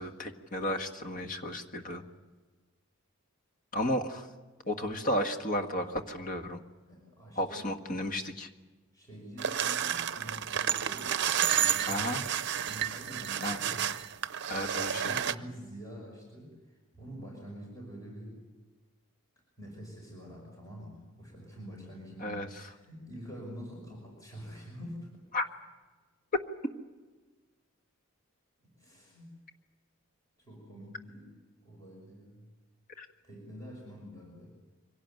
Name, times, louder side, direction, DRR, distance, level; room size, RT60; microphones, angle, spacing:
voice 1, 0.0-2.0 3.7-4.3 4.6-6.6 7.4-8.5 11.9-12.2 13.4-13.6 14.5-15.1 22.2-22.5 25.3-25.5 33.0-33.1, left 1 dB, 40° left, 5 dB, 1.7 m, -33 dB
voice 2, 6.9-7.7 8.9-11.2 11.6-12.1 12.7-13.9 14.9-18.4 19.6-25.1 28.8-29.4 30.4-31.3 31.6-32.5 33.2-34.5, equal, 15° left, -2 dB, 5.8 m, -46 dB
sound 1, 9.4-15.4, right 9 dB, 55° right, 0.7 m, -31 dB
24.5 x 17.5 x 9.1 m, 1.3 s
head